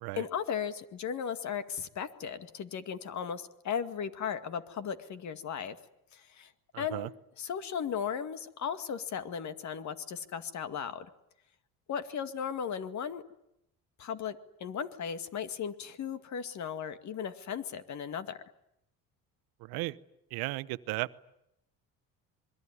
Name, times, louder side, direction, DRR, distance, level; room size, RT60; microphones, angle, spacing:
voice 1, 0.1-5.8 6.1-7.1 7.4-11.1 11.9-13.2 14.0-18.4, left 7 dB, 50° left, 11 dB, 2.1 m, -36 dB
voice 2, 6.7-7.1 19.7-20.0 20.3-21.1, right 21 dB, 90° right, 16 dB, 1.1 m, -35 dB
26.5 x 22.5 x 9.8 m, 0.81 s
cardioid pair, 120°, 36 cm